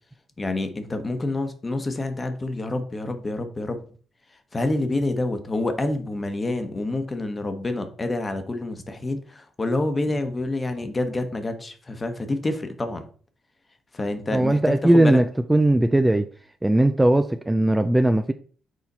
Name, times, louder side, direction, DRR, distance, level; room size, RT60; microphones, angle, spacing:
voice 1, 0.4-3.8 4.3-13.0 13.9-15.2, left 2 dB, 25° left, 1.1 m, -27 dB
voice 2, 14.3-15.2 15.5-16.3 16.6-18.3, right 1 dB, 10° right, 0.4 m, -18 dB
6.7 x 4.2 x 4.2 m
cardioid pair, 90°, 0 cm